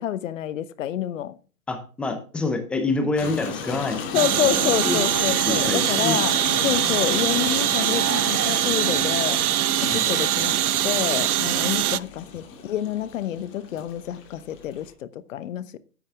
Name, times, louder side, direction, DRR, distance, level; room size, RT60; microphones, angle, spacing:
voice 1, 0.0-1.4 4.1-9.4 9.8-10.5 10.8-15.8, left 11 dB, 60° left, 1.0 m, -28 dB
voice 2, 1.7-5.0 5.5-6.2 6.6-7.0 9.9-10.1, left 3 dB, 5° left, 0.4 m, -28 dB
sound 1, 3.2-14.9, left 6 dB, 25° left, 2.2 m, -35 dB
sound 2, 4.1-12.0, right 12 dB, 85° right, 0.5 m, -23 dB
10.0 x 8.5 x 3.4 m
hypercardioid pair, 130°, 44 cm